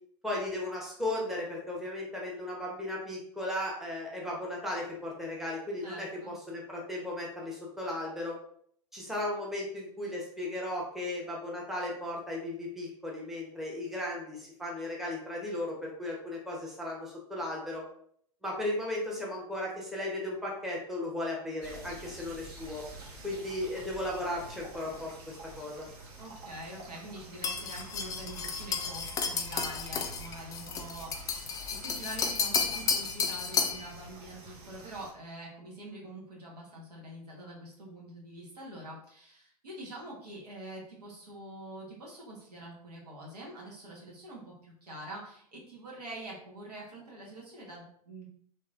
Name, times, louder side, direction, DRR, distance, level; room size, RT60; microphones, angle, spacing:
voice 1, 0.2-8.3 8.9-17.8 18.4-22.8 23.2-25.9, left 1 dB, ahead, -3 dB, 0.9 m, -36 dB
voice 2, 5.8-6.4 26.2-48.3, right 1 dB, 85° right, -3 dB, 1.3 m, -45 dB
sound 1, 21.6-35.1, right 2 dB, 45° right, 0.9 m, -48 dB
sound 2, 27.4-33.9, left 5 dB, 20° left, 0.3 m, -32 dB
3.0 x 2.9 x 2.4 m, 0.65 s
hypercardioid pair, 105°, 20 cm